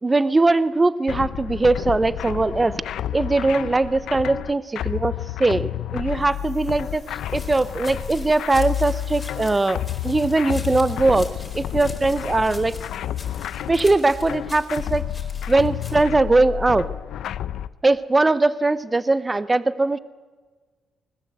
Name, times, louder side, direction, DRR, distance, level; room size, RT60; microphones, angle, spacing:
voice 1, 0.0-2.8 3.1-7.0 7.3-11.3 11.5-12.8 13.7-15.1 15.5-16.9 17.8-20.0, right 2 dB, 20° right, 16 dB, 0.7 m, -20 dB
sound 1, 1.1-17.7, left 11 dB, 75° left, 0.7 m, -30 dB
sound 2, 6.1-15.0, right 3 dB, 45° right, 4.9 m, -54 dB
sound 3, 7.3-16.0, left 3 dB, 25° left, 4.6 m, -42 dB
20.5 x 20.0 x 8.0 m, 1.4 s
cardioid pair, 90°, 0 cm